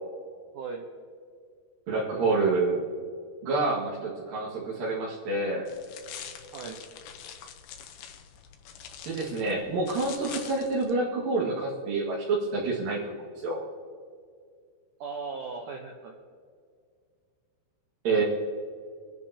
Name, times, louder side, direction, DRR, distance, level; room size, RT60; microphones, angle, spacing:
voice 1, 1.9-2.8 3.4-5.7 9.0-13.0 13.4-13.6 18.0-18.2, right 3 dB, 55° right, -7 dB, 3.3 m, -27 dB
sound 1, 5.7-10.9, left 8 dB, 75° left, 2.5 m, -44 dB
voice 2, 15.0-16.1, right 4 dB, 85° right, 1 dB, 1.8 m, -37 dB
27.5 x 10.5 x 2.9 m, 2.2 s
omnidirectional pair, 5.2 m